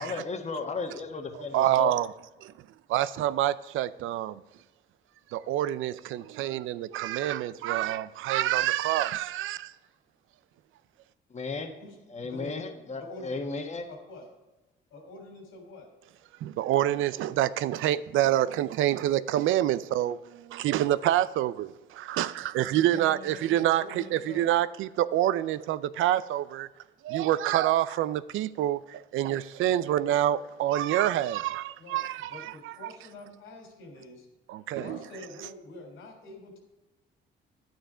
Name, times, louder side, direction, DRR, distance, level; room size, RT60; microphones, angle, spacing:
voice 1, 0.0-1.9 11.3-11.7 12.1-13.9, left 4 dB, 35° left, 1.4 m, -34 dB
voice 2, 1.5-2.1 2.9-4.4 5.3-9.7 16.4-26.7 27.0-32.7 34.5-35.0, right 13 dB, 85° right, 0.5 m, -27 dB
voice 3, 11.8-12.5 13.0-13.3 13.9-14.3 14.9-15.9 22.8-23.5 23.8-24.4 29.3-29.4 31.8-34.3 34.7-36.6, left 2 dB, 85° left, 3.6 m, -46 dB
10.5 x 9.3 x 5.0 m
cardioid pair, 90°, 20 cm